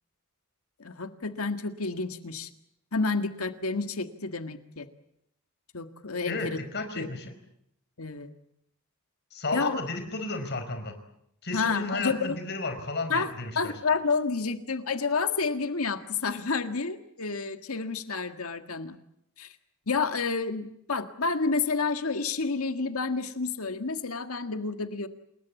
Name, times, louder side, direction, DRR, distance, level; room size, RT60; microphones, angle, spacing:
voice 1, 0.8-2.5 2.9-4.9 5.7-6.6 7.0-7.1 8.0-8.3 9.5-9.8 11.5-12.4 13.1-19.0 19.4-19.6 19.9-25.1, left 4 dB, 85° left, 8 dB, 1.7 m, -30 dB
voice 2, 6.3-7.3 9.3-11.0 11.4-13.7, left 3 dB, 50° left, 8 dB, 4.9 m, -33 dB
28.5 x 21.0 x 8.3 m, 0.76 s
head